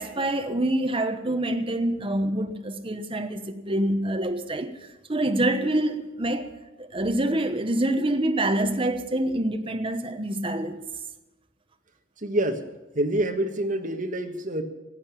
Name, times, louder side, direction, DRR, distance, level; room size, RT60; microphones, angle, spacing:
voice 1, 0.0-10.8, right 1 dB, 25° right, 1.0 m, -26 dB
voice 2, 12.2-12.7 12.9-14.6, right 1 dB, 40° right, 1.5 m, -26 dB
16.5 x 8.8 x 10.0 m
head